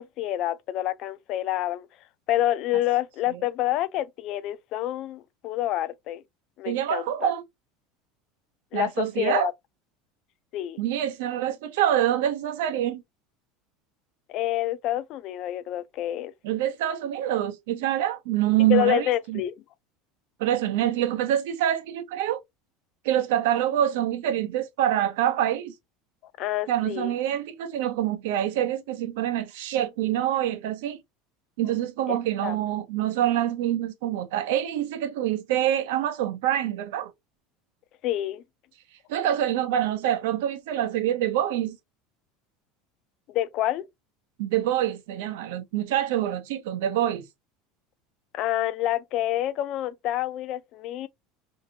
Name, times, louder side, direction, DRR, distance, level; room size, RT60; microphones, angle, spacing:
voice 1, 0.0-1.9 2.3-6.2 6.6-7.3 8.7-9.5 10.5-10.8 14.3-16.3 18.7-19.5 26.4-27.1 32.1-32.2 32.4-32.6 38.0-38.4 43.3-43.9 48.3-51.1, left 13 dB, 50° left, 0.3 m, -27 dB
voice 2, 6.7-7.4 8.7-9.5 10.8-13.0 16.4-19.4 20.4-22.4 23.0-25.7 26.7-31.0 31.6-37.1 39.1-41.8 44.4-47.3, right 11 dB, 80° right, 0.6 m, -26 dB
2.7 x 2.5 x 2.7 m
supercardioid pair, 145°, 0 cm